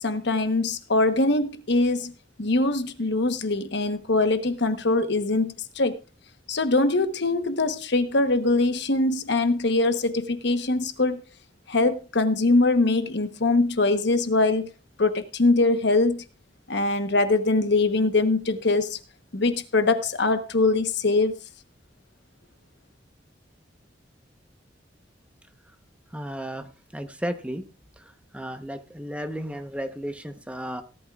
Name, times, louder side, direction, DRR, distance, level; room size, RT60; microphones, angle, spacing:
voice 1, 0.0-2.1 2.4-6.0 6.5-11.2 11.7-14.7 15.0-16.2 16.7-19.0 19.3-21.3, left 2 dB, 65° left, 1.1 m, -22 dB
voice 2, 26.1-26.7 26.9-27.6 28.3-30.8, equal, 5° right, 1.0 m, -33 dB
17.5 x 11.5 x 2.4 m
head